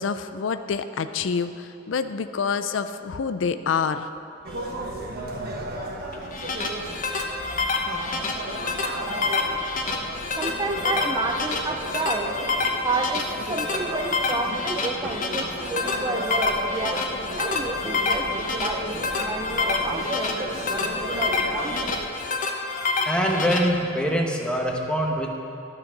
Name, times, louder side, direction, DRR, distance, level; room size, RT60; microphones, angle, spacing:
voice 1, 0.0-4.1 22.9-23.1, left 6 dB, 75° left, 11 dB, 0.4 m, -27 dB
sound 1, 4.4-22.1, right 1 dB, 55° right, 1.2 m, -34 dB
sound 2, 6.1-23.6, left 3 dB, 45° left, 1.0 m, -27 dB
voice 2, 8.1-8.8 22.7-25.4, equal, 5° left, 0 dB, 1.0 m, -26 dB
voice 3, 10.4-12.4 12.8-22.0, right 3 dB, 20° right, 6 dB, 0.4 m, -31 dB
12.5 x 6.8 x 5.9 m, 2.9 s
head